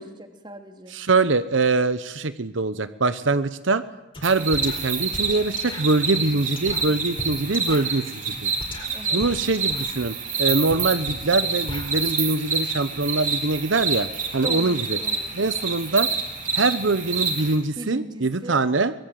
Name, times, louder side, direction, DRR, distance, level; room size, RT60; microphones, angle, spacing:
voice 1, 0.0-1.0 8.9-9.2 14.4-15.4 17.8-18.6, right 1 dB, 25° right, 6 dB, 2.8 m, -38 dB
voice 2, 0.9-3.8 4.2-8.5 9.1-15.0 15.3-16.1 16.5-18.9, right 3 dB, 80° right, 13 dB, 1.0 m, -23 dB
sound 1, 4.1-4.3 4.5-12.1, left 1 dB, 25° left, 4.5 m, -38 dB
sound 2, 4.2-17.6, right 5 dB, 40° right, 4.4 m, -28 dB
23.5 x 22.0 x 9.4 m, 0.97 s
head